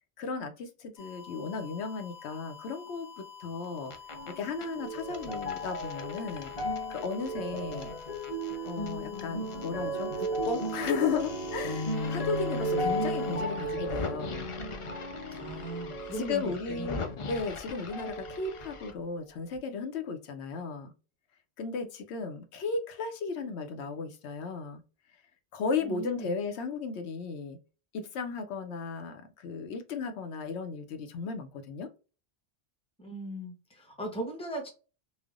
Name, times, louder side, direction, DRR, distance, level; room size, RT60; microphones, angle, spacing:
voice 1, 0.2-3.9 4.3-6.5 6.9-7.9 8.6-14.5 16.1-17.0 17.2-20.9 21.6-24.8 25.5-27.6 27.9-31.9, left 5 dB, 90° left, 0.9 m, -35 dB
sound 1, 1.0-13.4, left 6 dB, 75° left, 1.6 m, -49 dB
sound 2, 3.6-4.3 4.6-9.7 10.0-18.9, left 4 dB, 55° left, 0.3 m, -43 dB
sound 3, 4.1-17.6 17.9-18.9 19.5-19.6, right 1 dB, 35° left, 0.9 m, -35 dB
voice 2, 15.3-17.4 25.8-26.4 33.0-34.7, right 1 dB, 5° left, 0.7 m, -39 dB
3.2 x 2.1 x 2.3 m
omnidirectional pair, 1.1 m